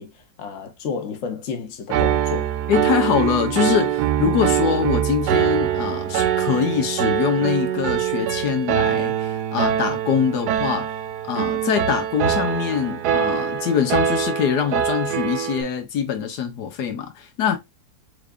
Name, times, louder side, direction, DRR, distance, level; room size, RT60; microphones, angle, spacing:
voice 1, 0.0-2.5, left 5 dB, 55° left, 1.2 m, -31 dB
Piano, 1.9-15.6, right 10 dB, 85° right, 1.2 m, -23 dB
voice 2, 2.7-10.9 11.3-17.6, left 8 dB, 90° left, 1.4 m, -23 dB
4.7 x 3.5 x 2.4 m
omnidirectional pair, 1.7 m